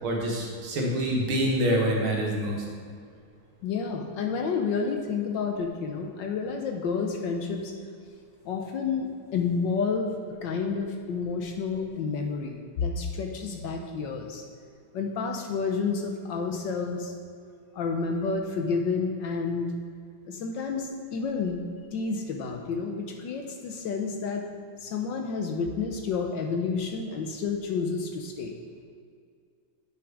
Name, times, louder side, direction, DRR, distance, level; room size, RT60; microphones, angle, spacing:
voice 1, 0.0-2.6, equal, 70° right, -1 dB, 2.1 m, -26 dB
voice 2, 3.6-7.7 8.4-10.1 10.4-14.4 14.9-17.1 17.7-19.7 20.3-21.6 21.9-24.4 24.8-28.5, left 5 dB, 70° left, 3 dB, 1.3 m, -30 dB
8.6 x 6.1 x 4.7 m, 2.2 s
omnidirectional pair, 2.4 m